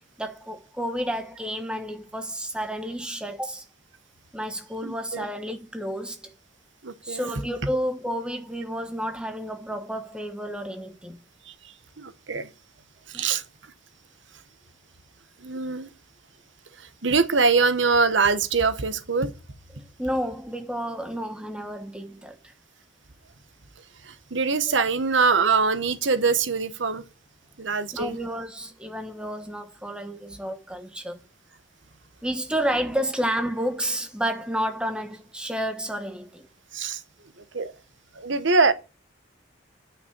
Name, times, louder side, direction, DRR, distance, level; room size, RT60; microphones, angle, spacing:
voice 1, 0.2-3.6 4.3-6.3 7.0-11.2 13.1-13.3 19.7-22.5 27.9-31.2 32.2-36.5, equal, 5° right, 1.2 m, -31 dB
voice 2, 4.8-5.2 6.8-7.3 11.5-11.6 12.0-12.5 13.1-13.4 15.4-15.9 16.8-19.3 24.0-27.0 27.6-28.1 36.7-37.0 37.5-37.7 38.1-38.7, right 4 dB, 75° right, 1.1 m, -23 dB
9.6 x 5.8 x 8.1 m
head